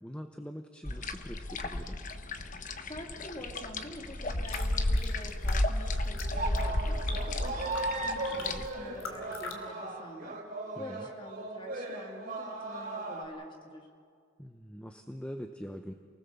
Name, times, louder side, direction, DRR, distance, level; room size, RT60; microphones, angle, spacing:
voice 1, 0.0-2.0 8.3-8.7 10.8-11.0 14.4-15.9, equal, 5° left, 5 dB, 0.8 m, -43 dB
sound 1, 0.8-8.7, left 1 dB, 40° left, 1.1 m, -33 dB
voice 2, 2.8-10.4 10.8-13.9, equal, 25° left, 2 dB, 2.8 m, -47 dB
sound 2, 4.2-9.6, left 4 dB, 80° left, 2.9 m, -46 dB
sound 3, 6.3-13.2, right 2 dB, 40° right, 4.2 m, -37 dB
28.5 x 19.5 x 7.1 m, 2.1 s
head